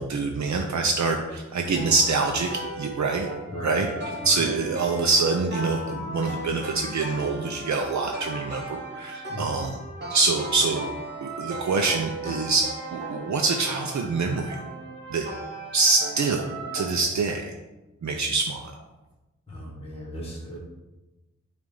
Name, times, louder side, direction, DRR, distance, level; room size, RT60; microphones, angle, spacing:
voice 1, 0.0-2.5 2.8-3.3 3.6-3.9 4.2-9.8 10.1-10.9 11.2-12.6 12.9-14.6 15.1-15.2 15.7-17.5 18.0-18.8, right 3 dB, 70° right, 3 dB, 0.6 m, -25 dB
sound 1, 1.7-17.0, right 2 dB, 35° right, 1.6 m, -37 dB
voice 2, 3.5-4.9 9.3-9.7 19.5-20.6, equal, 20° left, -2 dB, 1.5 m, -37 dB
7.4 x 2.5 x 5.4 m, 1.1 s
wide cardioid pair, 100°, 29 cm